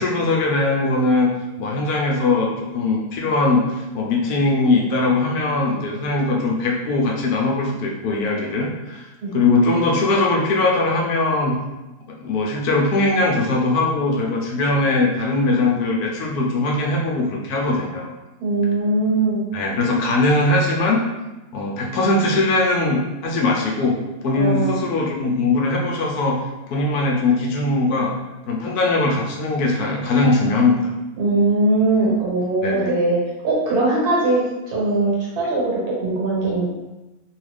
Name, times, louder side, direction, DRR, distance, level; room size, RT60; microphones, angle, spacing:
voice 1, 0.0-9.1 9.3-11.6 12.2-18.1 19.5-21.0 21.5-26.4 26.7-28.1 28.5-30.8 32.6-33.0, left 2 dB, 75° left, -1 dB, 1.1 m, -20 dB
voice 2, 18.4-19.4 24.3-24.8 31.2-36.6, right 2 dB, 70° right, -4 dB, 1.5 m, -20 dB
3.1 x 2.3 x 3.3 m, 1.0 s
omnidirectional pair, 1.7 m